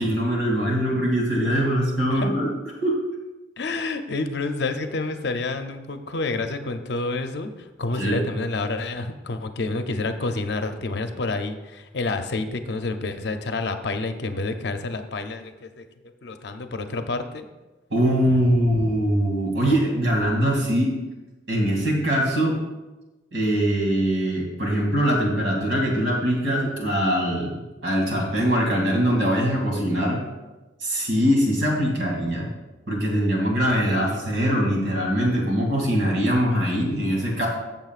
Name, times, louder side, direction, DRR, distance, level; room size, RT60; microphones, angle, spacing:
voice 1, 0.0-2.5 2.8-3.0 8.0-8.2 17.9-20.9 21.5-22.6 23.3-30.2 30.8-32.5 32.9-37.5, equal, 85° right, -1 dB, 2.6 m, -22 dB
voice 2, 3.6-7.5 7.8-15.9 16.2-17.5 33.8-34.4, left 3 dB, 65° left, 7 dB, 0.6 m, -29 dB
13.5 x 7.1 x 2.5 m, 1.1 s
head